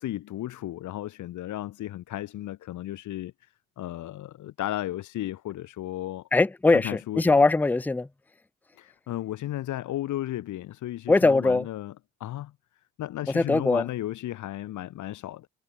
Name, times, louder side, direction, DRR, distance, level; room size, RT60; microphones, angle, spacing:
voice 1, 0.0-6.3 6.7-7.4 8.8-11.9 12.2-12.5 13.0-15.5, left 14 dB, 75° left, 1.6 m, -34 dB
voice 2, 6.3-8.1 11.1-11.7 13.3-13.9, left 3 dB, 5° left, 0.5 m, -21 dB
cardioid pair, 90°, 30 cm